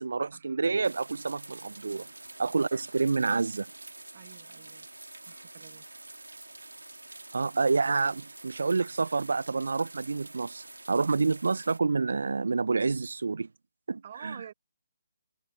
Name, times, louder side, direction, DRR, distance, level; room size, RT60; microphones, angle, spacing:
voice 1, 0.0-2.1 2.4-3.7 7.3-13.5 13.9-14.4, right 4 dB, 60° right, 0.6 m, -28 dB
sound 1, 0.8-11.8, right 2 dB, 80° right, 2.2 m, -47 dB
voice 2, 4.1-4.9 5.3-5.8 14.0-14.5, right 9 dB, 35° right, 1.5 m, -48 dB
figure-of-eight pair, 145°, 0 cm